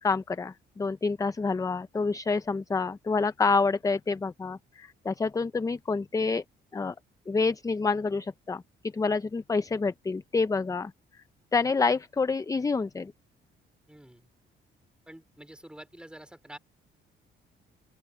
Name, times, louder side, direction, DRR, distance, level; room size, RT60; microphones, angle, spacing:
voice 1, 0.0-6.4 6.7-6.9 7.3-10.9 11.5-13.1, left 4 dB, 15° left, 0.5 m, -28 dB
voice 2, 13.9-14.3 15.1-16.6, right 1 dB, 5° right, 3.8 m, -48 dB
open air
cardioid pair, 90°, 20 cm